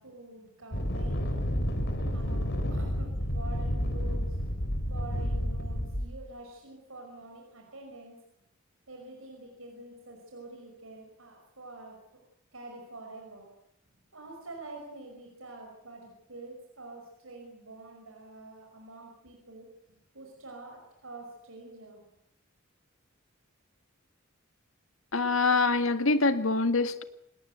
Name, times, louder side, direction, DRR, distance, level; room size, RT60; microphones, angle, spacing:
voice 1, 0.0-1.5 2.1-4.4 4.9-8.2 8.9-12.0 12.5-13.5 14.1-22.0, right 2 dB, 90° right, 1 dB, 5.7 m, -47 dB
sound 1, 0.7-6.1, equal, 60° left, 4.6 m, -30 dB
voice 2, 25.1-27.0, left 3 dB, 80° left, 10 dB, 1.7 m, -25 dB
26.5 x 20.0 x 8.1 m, 0.78 s
head